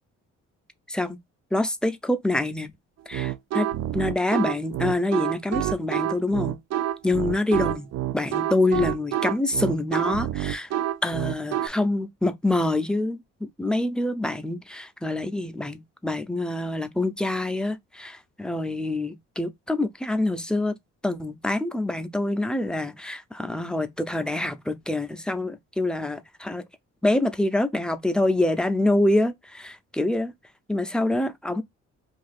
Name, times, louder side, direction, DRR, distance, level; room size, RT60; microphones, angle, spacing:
voice 1, 1.5-2.7 3.1-3.7 3.9-6.6 7.0-10.7 11.0-20.7 21.0-26.6 27.0-30.3 30.7-31.6, left 2 dB, 5° left, 0.5 m, -26 dB
sound 1, 3.1-11.7, right 12 dB, 60° right, 0.4 m, -27 dB
2.8 x 2.5 x 4.1 m
cardioid pair, 90°, 30 cm